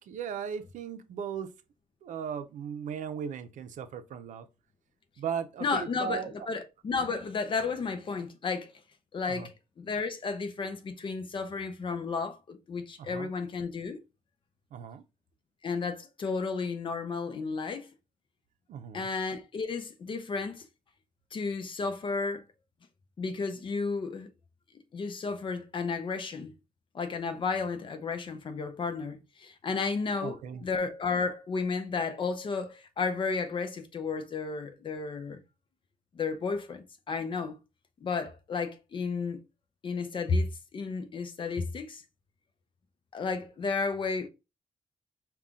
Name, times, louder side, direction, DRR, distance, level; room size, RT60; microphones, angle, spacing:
voice 1, 0.0-1.5 2.0-4.5 5.2-6.5 7.0-7.1 9.3-9.5 13.0-13.3 14.7-15.0 18.7-19.1 30.2-30.7, right 7 dB, 80° right, 0.6 m, -37 dB
voice 2, 5.6-8.7 9.1-14.0 15.6-17.9 18.9-20.7 21.3-22.4 23.2-24.3 24.7-26.5 26.9-35.4 36.1-37.6 38.0-39.4 39.8-42.0 43.1-44.3, left 4 dB, 40° left, 0.6 m, -33 dB
5.4 x 2.3 x 3.6 m
wide cardioid pair, 140°, 13 cm